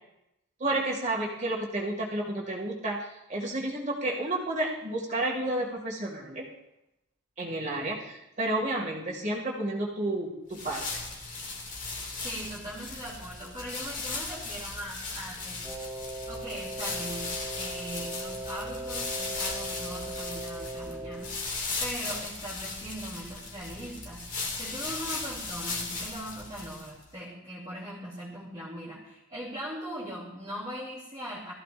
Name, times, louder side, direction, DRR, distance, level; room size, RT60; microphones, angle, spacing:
voice 1, 0.6-6.4 7.4-10.8, right 1 dB, 35° right, -2 dB, 2.2 m, -31 dB
sound 1, 10.5-27.0, left 3 dB, 35° left, 2.3 m, -37 dB
voice 2, 12.2-15.6 16.3-31.5, equal, 20° right, -8 dB, 2.8 m, -40 dB
Wind instrument woodwind instrument, 15.6-21.4, right 2 dB, ahead, 1.3 m, -39 dB
20.0 x 14.0 x 2.6 m, 0.89 s
head